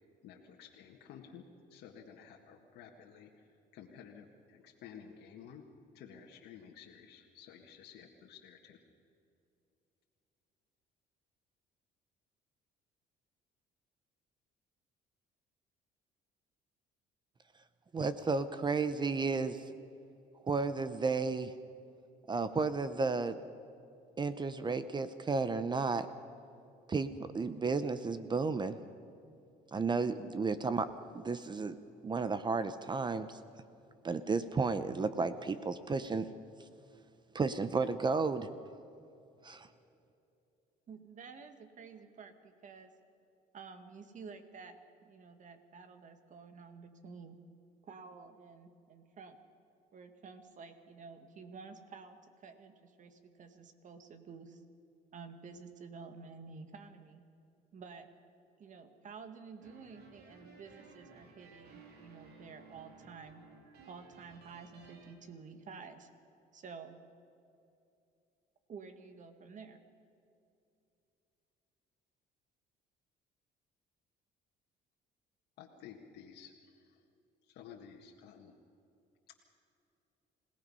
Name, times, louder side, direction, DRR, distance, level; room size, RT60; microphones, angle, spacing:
voice 1, 0.2-3.3 3.7-5.6 5.9-8.8 75.6-77.0 77.5-78.5 79.3-79.4, left 7 dB, 80° left, 0 dB, 1.8 m, -53 dB
voice 2, 17.9-19.6 20.5-21.5 22.3-23.4 24.2-26.1 26.9-28.8 29.7-31.8 32.0-33.4 34.0-36.3 37.3-38.5 39.4-39.7, right 4 dB, 25° right, 12 dB, 0.8 m, -33 dB
voice 3, 40.9-42.9 43.5-47.4 47.8-49.4 49.9-54.6 55.1-57.2 57.7-58.1 58.6-63.4 63.9-66.1 66.5-67.0 68.7-69.8, right 5 dB, 50° right, 8 dB, 2.0 m, -51 dB
sound 1, 59.6-65.1, right 4 dB, 75° right, 3.1 m, -57 dB
26.5 x 18.0 x 5.6 m, 2.7 s
cardioid pair, 110°, 17 cm